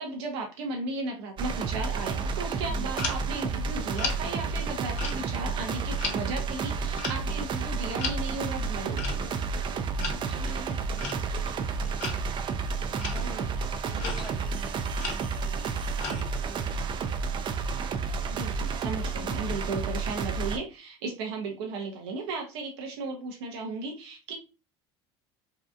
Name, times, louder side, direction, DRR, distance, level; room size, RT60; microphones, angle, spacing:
voice 1, 0.0-9.3 13.1-13.5 13.9-14.0 18.3-24.3, right 3 dB, 75° right, 1 dB, 0.7 m, -35 dB
sound 1, 1.4-20.6, right 5 dB, 35° right, 0.4 m, -31 dB
sound 2, 3.0-3.4 3.9-4.2 5.0-5.7 6.0-6.2 7.0-7.3 8.0-8.3 9.0-9.2 10.0-10.3 11.0-11.4 12.0-12.2 13.0-13.4 14.0-14.4 15.0-15.4 16.0-16.3, left 4 dB, 55° left, 0.9 m, -35 dB
voice 2, 10.2-12.0 12.9-15.8 16.2-17.1, equal, ahead, -2 dB, 0.7 m, -47 dB
2.7 x 2.4 x 2.3 m, 0.30 s
hypercardioid pair, 80°, 14 cm